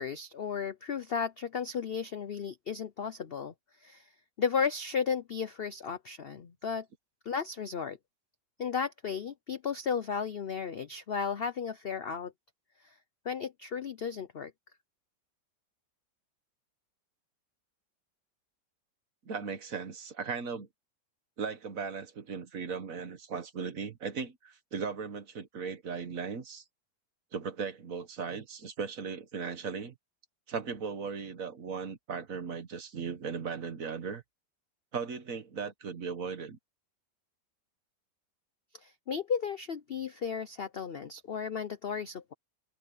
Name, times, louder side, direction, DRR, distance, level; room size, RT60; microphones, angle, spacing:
voice 1, 0.0-3.5 3.8-4.1 4.4-6.9 7.3-8.0 8.6-12.3 12.8-12.9 13.2-14.5 38.8-42.3, left 6 dB, 65° left, 0.5 m, -34 dB
voice 2, 19.3-20.7 21.4-26.6 27.3-29.9 30.5-34.2 34.9-36.6, right 5 dB, 50° right, 1.6 m, -37 dB
omnidirectional pair, 1.9 m